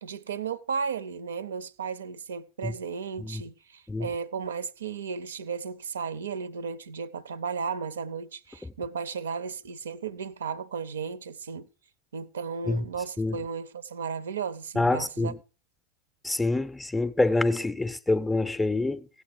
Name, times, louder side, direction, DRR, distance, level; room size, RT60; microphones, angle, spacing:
voice 1, 0.0-11.7 12.1-15.3, right 6 dB, 65° right, 0.6 m, -34 dB
voice 2, 14.8-15.4 16.2-19.1, left 2 dB, 5° left, 0.5 m, -26 dB
16.0 x 8.2 x 5.1 m
figure-of-eight pair, 90°, 0 cm